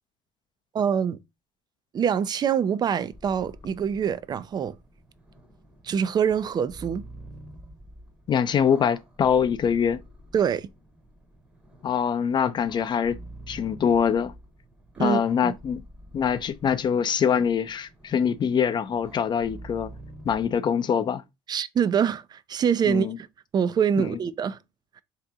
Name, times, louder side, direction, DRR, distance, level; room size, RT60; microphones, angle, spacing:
voice 1, 0.7-1.2 1.9-4.7 5.8-7.0 10.3-10.7 15.0-15.5 21.5-23.3 23.5-24.6, right 7 dB, 30° right, 0.3 m, -25 dB
sound 1, 3.1-20.6, right 1 dB, 10° right, 0.9 m, -48 dB
voice 2, 8.3-10.0 11.8-13.2 13.5-14.3 15.0-15.8 16.1-19.9 20.2-21.2 22.8-23.2, left 7 dB, 30° left, 0.4 m, -24 dB
3.7 x 2.8 x 3.5 m
cardioid pair, 110°, 14 cm